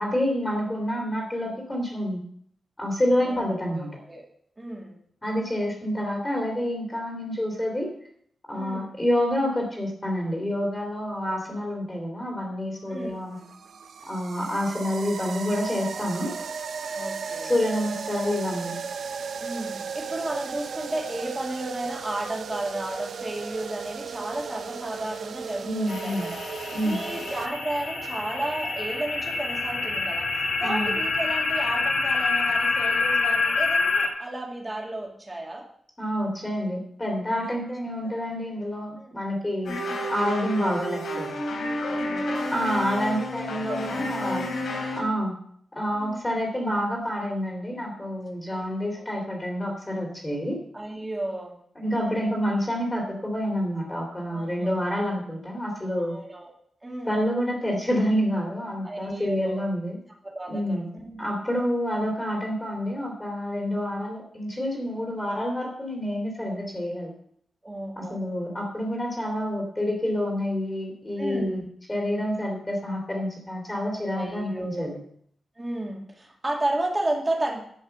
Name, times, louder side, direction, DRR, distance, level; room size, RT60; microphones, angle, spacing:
voice 1, 0.0-2.2 2.8-3.9 5.2-7.9 8.5-13.4 14.1-16.3 17.4-18.7 25.6-26.3 26.7-27.0 30.6-30.8 36.0-41.3 42.5-44.5 44.9-45.4 45.7-50.6 51.8-56.2 57.0-60.0 60.5-60.9 61.2-67.1 68.0-71.6 71.9-75.0, equal, 15° left, -1 dB, 2.6 m, -28 dB
voice 2, 3.2-4.3 4.6-4.9 8.5-8.9 11.2-11.6 12.9-13.2 15.9-16.5 16.9-17.5 19.4-26.4 26.8-30.3 30.6-35.6 37.3-37.6 38.0-38.1 39.0-39.2 39.7-39.9 41.8-44.4 45.9-46.3 48.5-48.7 48.9-49.1 50.7-52.2 54.3-54.9 55.9-56.5 56.8-57.2 58.8-59.7 60.2-61.2 67.6-68.2 71.2-71.7 74.1-74.9 75.6-77.6, right 1 dB, 15° right, 0 dB, 2.3 m, -33 dB
sound 1, 12.8-27.5, right 6 dB, 70° right, 0.7 m, -36 dB
sound 2, 25.9-34.1, left 3 dB, 65° left, 1.7 m, -26 dB
sound 3, 39.6-45.0, left 1 dB, 90° left, 3.5 m, -30 dB
11.5 x 5.4 x 7.6 m, 0.64 s
wide cardioid pair, 160°, 0 cm